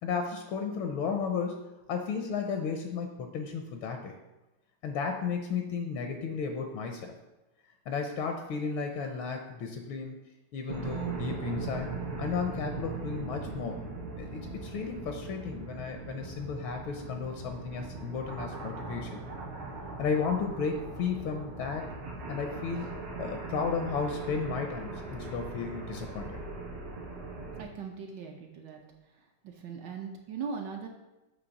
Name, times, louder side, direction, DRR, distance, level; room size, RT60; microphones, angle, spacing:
voice 1, 0.0-1.6 1.9-4.2 4.8-7.1 7.9-10.2 10.5-11.9 12.2-13.9 14.2-19.2 20.0-21.9 22.3-22.9 23.2-26.4, left 5 dB, 75° left, 4 dB, 1.4 m, -34 dB
sound 1, 10.7-27.6, right 3 dB, 85° right, 2.1 m, -40 dB
voice 2, 27.6-28.8 29.1-30.9, right 5 dB, 65° right, 2 dB, 1.3 m, -40 dB
8.0 x 3.1 x 5.8 m, 1.0 s
omnidirectional pair, 2.4 m